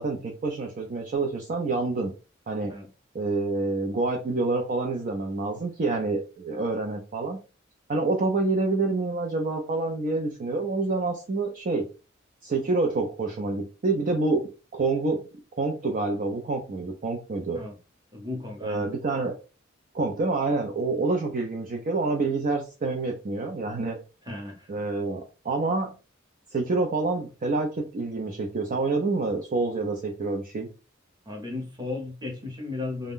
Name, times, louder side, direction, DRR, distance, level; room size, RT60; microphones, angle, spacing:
voice 1, 0.0-2.1 2.5-2.7 3.1-7.4 7.9-11.9 12.4-15.2 15.6-17.6 18.6-19.3 19.9-24.0 24.7-25.9 26.5-30.7, right 3 dB, 45° right, 0.5 m, -27 dB
voice 2, 18.1-18.9 24.2-24.7 31.3-33.1, left 3 dB, 20° right, 0.8 m, -35 dB
2.5 x 2.2 x 3.5 m
head